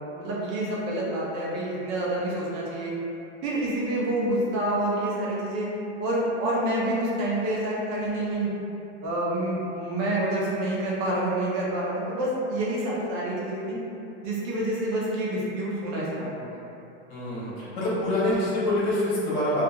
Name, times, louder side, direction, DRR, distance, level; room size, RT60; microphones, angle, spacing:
voice 1, 0.1-3.0 3.4-5.7 6.0-8.5 9.0-13.8 14.2-16.6, right 1 dB, 35° right, -6 dB, 0.6 m, -28 dB
voice 2, 17.1-19.6, left 1 dB, 60° left, -8 dB, 1.1 m, -26 dB
2.7 x 2.4 x 2.2 m, 2.9 s
supercardioid pair, 160°, 37 cm